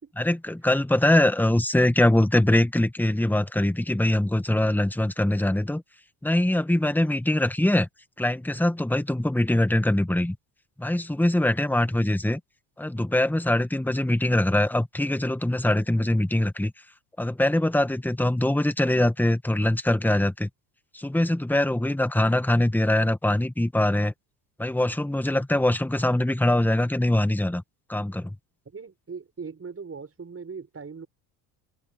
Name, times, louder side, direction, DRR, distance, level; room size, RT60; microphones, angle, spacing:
voice 1, 0.2-5.8 6.2-7.9 8.2-10.4 10.8-12.4 12.8-16.7 17.2-20.5 20.9-24.1 24.6-27.6 27.9-28.4, left 1 dB, 5° left, 1.9 m, -23 dB
voice 2, 28.7-31.1, right 5 dB, 30° right, 6.1 m, -39 dB
open air
hypercardioid pair, 70°, 48 cm